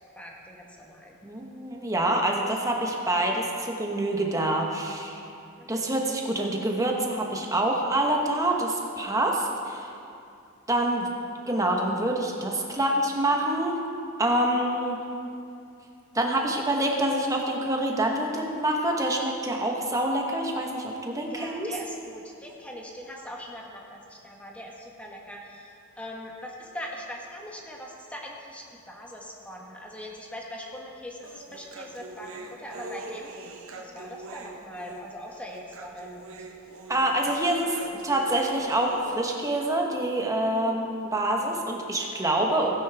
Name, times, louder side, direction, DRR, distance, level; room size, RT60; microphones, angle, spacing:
voice 1, 0.1-1.2 5.6-5.9 12.7-12.8 21.3-33.3 33.8-36.3 37.6-38.2, equal, 5° left, -1 dB, 1.3 m, -41 dB
voice 2, 1.2-5.2 5.7-9.9 10.7-11.1 11.5-13.7 14.2-15.0 16.1-21.7 36.9-37.7 38.0-42.7, right 1 dB, 15° right, 0 dB, 1.1 m, -26 dB
Human voice, 31.2-39.2, right 2 dB, 65° right, 1.0 m, -42 dB
16.5 x 9.4 x 3.5 m, 2.6 s
head